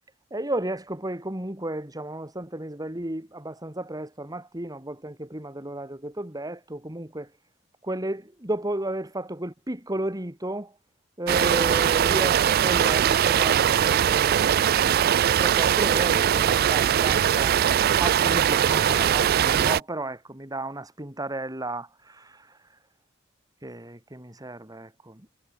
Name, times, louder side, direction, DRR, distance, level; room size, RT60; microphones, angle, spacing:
voice 1, 0.3-7.3 7.8-10.7 11.2-17.6 18.0-22.6 23.6-25.3, right 1 dB, 20° right, 2.5 m, -33 dB
sound 1, 11.3-19.8, right 9 dB, 45° right, 0.3 m, -21 dB
head